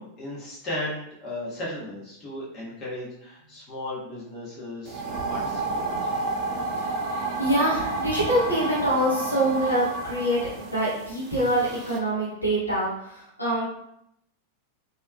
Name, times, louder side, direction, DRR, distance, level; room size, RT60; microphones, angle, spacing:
voice 1, 0.0-5.9, left 1 dB, 30° left, -7 dB, 1.3 m, -36 dB
sound 1, 4.9-12.0, right 2 dB, 40° right, 0.4 m, -31 dB
voice 2, 7.1-13.6, right 1 dB, 85° left, -8 dB, 1.2 m, -25 dB
3.4 x 3.0 x 2.2 m, 0.76 s
figure-of-eight pair, 90°, 0 cm